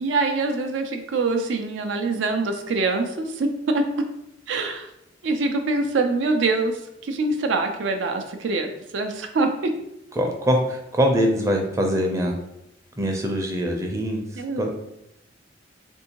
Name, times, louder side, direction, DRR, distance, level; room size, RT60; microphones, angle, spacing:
voice 1, 0.0-4.1 4.5-4.9 5.2-6.8 7.0-9.7 14.4-14.7, right 3 dB, 85° right, 5 dB, 0.4 m, -24 dB
voice 2, 10.1-12.3 13.0-14.2 14.6-14.7, equal, 15° right, 2 dB, 0.4 m, -23 dB
3.5 x 2.6 x 2.8 m, 0.82 s
head